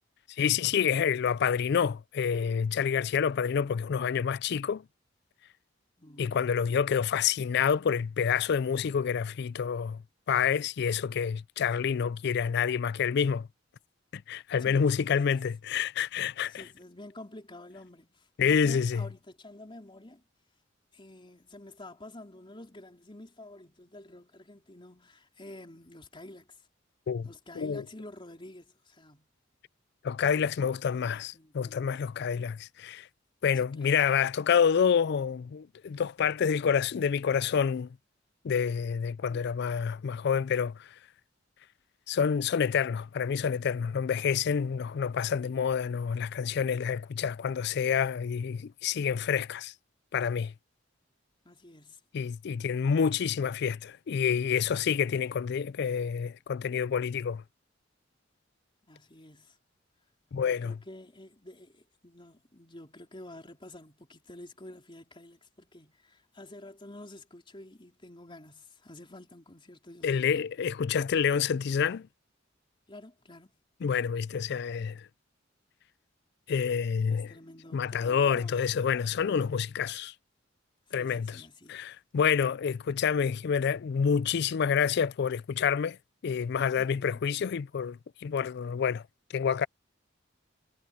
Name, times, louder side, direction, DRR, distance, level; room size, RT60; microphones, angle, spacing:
voice 1, 0.4-4.8 6.2-10.0 10.3-13.5 14.1-16.6 18.4-19.1 27.1-27.3 27.6-27.8 30.0-33.1 33.4-37.9 38.4-40.9 42.1-49.7 50.1-50.5 52.1-57.4 60.3-60.8 70.0-72.1 73.8-75.1 76.5-77.3 77.7-80.1 80.9-81.4 81.7-86.0 86.2-89.0 89.3-89.7, left 7 dB, 60° left, 0.4 m, -28 dB
voice 2, 6.0-6.4 14.6-15.4 16.5-20.2 20.9-26.6 27.2-29.3 30.6-32.1 33.6-34.2 39.3-39.6 44.8-45.2 51.5-52.0 58.9-59.6 60.4-70.3 72.9-73.5 77.1-78.6 79.2-79.5 81.0-81.8 86.8-87.2, left 1 dB, 25° left, 3.7 m, -49 dB
head